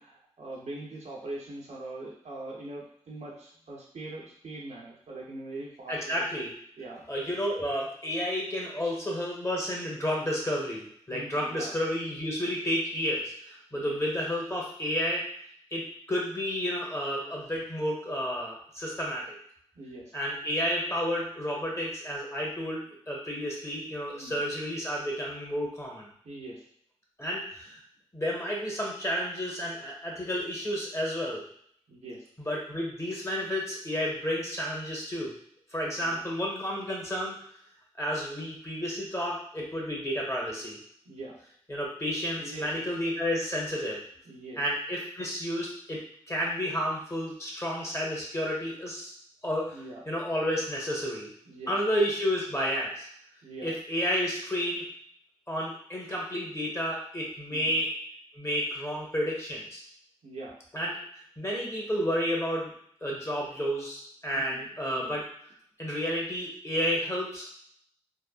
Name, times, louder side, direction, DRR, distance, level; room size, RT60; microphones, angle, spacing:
voice 1, 0.0-6.3 6.8-7.0 8.8-9.0 11.1-11.7 13.7-14.0 19.7-20.1 24.1-24.3 26.2-26.7 31.9-32.3 36.0-36.2 41.1-41.4 42.4-42.9 44.3-44.6 49.7-50.0 51.5-51.7 53.4-53.7 57.5-57.7 60.2-60.5 64.3-64.6 64.9-65.1, right 2 dB, 75° right, -3 dB, 0.8 m, -42 dB
voice 2, 5.9-6.5 7.1-15.2 15.7-19.3 20.1-26.1 27.2-27.8 28.1-31.4 32.4-35.3 35.7-37.4 38.0-40.8 41.7-44.0 44.6-46.0 46.3-49.1 49.4-49.8 50.1-51.3 51.7-53.1 53.6-54.9 55.5-57.9 58.3-59.8 60.7-61.0 61.4-62.7 63.0-65.3 65.8-67.5, equal, 25° left, -3 dB, 1.3 m, -31 dB
3.5 x 2.1 x 2.4 m, 0.64 s
cardioid pair, 50°, 12 cm